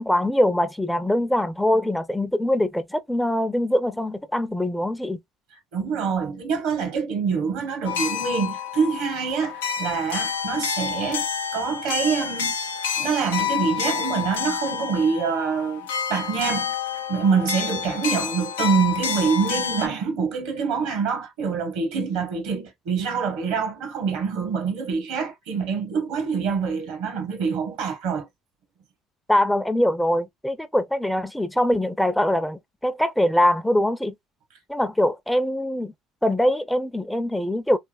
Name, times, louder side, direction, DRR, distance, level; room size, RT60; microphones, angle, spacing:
voice 1, 0.0-5.2 29.3-34.1 34.7-35.9 36.2-37.8, left 1 dB, 5° left, 0.5 m, -23 dB
voice 2, 5.7-11.3 11.5-12.5 13.0-16.7 17.1-28.3, right 6 dB, 75° right, 1.2 m, -25 dB
sound 1, 7.9-19.9, left 7 dB, 85° left, 0.5 m, -29 dB
3.3 x 2.9 x 2.4 m
hypercardioid pair, 65°, 0 cm